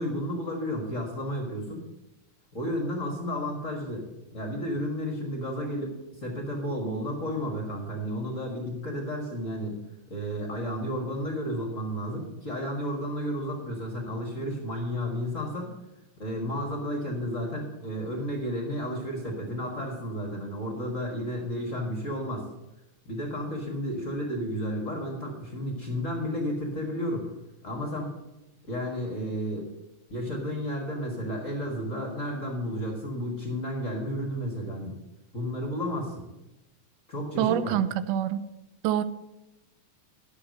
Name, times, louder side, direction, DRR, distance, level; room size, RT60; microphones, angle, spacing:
voice 1, 0.0-1.8 2.5-4.1 4.3-9.7 10.1-15.7 16.2-22.4 23.0-27.3 27.6-28.1 28.6-29.7 30.1-35.0 35.3-36.2 37.1-37.8, equal, 35° left, 0 dB, 1.5 m, -32 dB
voice 2, 37.4-38.4 38.8-39.0, right 10 dB, 90° right, 13 dB, 2.2 m, -25 dB
11.5 x 6.7 x 6.5 m, 0.98 s
omnidirectional pair, 3.6 m